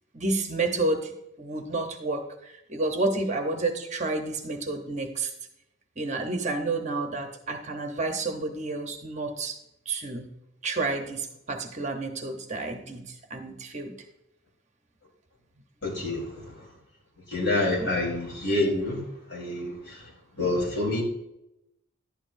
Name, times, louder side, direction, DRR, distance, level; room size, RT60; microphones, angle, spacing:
voice 1, 0.1-5.3 6.0-9.6 9.9-10.3 10.6-13.9 17.8-18.0 20.4-20.6, right 3 dB, 35° right, 4 dB, 1.0 m, -30 dB
voice 2, 15.8-16.5 17.3-19.0 19.3-20.0 20.4-21.0, left 2 dB, 55° left, -3 dB, 4.1 m, -27 dB
11.5 x 9.6 x 2.7 m, 0.85 s
head